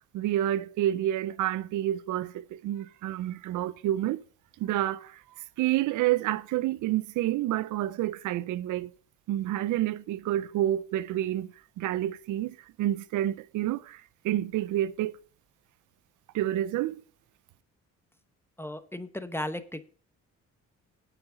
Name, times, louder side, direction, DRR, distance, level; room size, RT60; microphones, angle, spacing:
voice 1, 0.0-4.2 4.6-5.2 5.6-8.9 9.3-15.2 16.3-17.0, right 13 dB, 85° right, 0.6 m, -29 dB
voice 2, 18.6-19.9, left 1 dB, 10° left, 1.0 m, -35 dB
8.8 x 5.9 x 7.9 m
cardioid pair, 90°, 30 cm